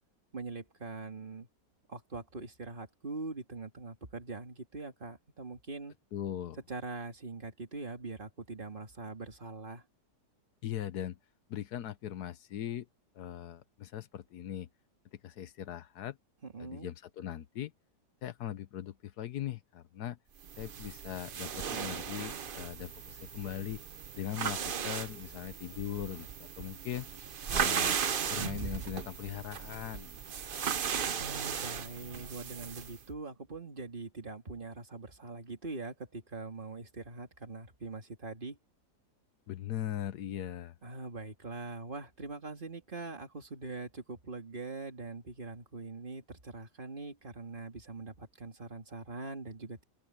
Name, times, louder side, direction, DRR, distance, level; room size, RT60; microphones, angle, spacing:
voice 1, 0.3-1.5 1.9-5.9 6.7-9.8 16.4-16.9 31.1-38.6 40.8-49.8, right 3 dB, 30° right, 2.5 m, -43 dB
voice 2, 6.1-6.6 10.6-11.2 11.5-12.9 13.1-14.7 15.1-16.2 16.6-17.7 18.2-20.2 20.6-23.8 24.1-27.1 27.5-30.2 39.5-40.7, left 11 dB, 65° left, 1.2 m, -40 dB
sound 1, 20.4-33.0, right 7 dB, 60° right, 0.5 m, -36 dB
open air
omnidirectional pair, 1.9 m